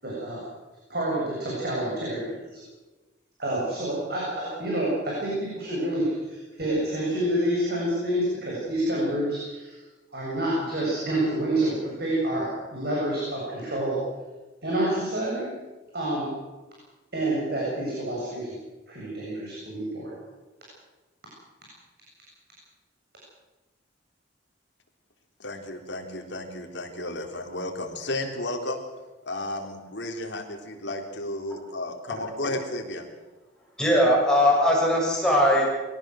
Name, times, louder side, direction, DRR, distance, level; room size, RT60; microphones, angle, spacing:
voice 1, 0.0-0.4 0.9-2.6 3.4-9.8 10.1-14.0 14.6-15.5 15.9-16.3 17.1-18.5 18.9-20.1, right 1 dB, 55° right, -5 dB, 7.9 m, -28 dB
voice 2, 25.4-28.8 29.2-33.1, left 1 dB, 65° left, 3 dB, 3.8 m, -33 dB
voice 3, 33.8-35.6, equal, 5° left, -4 dB, 7.9 m, -20 dB
22.5 x 17.5 x 7.8 m, 1.2 s
head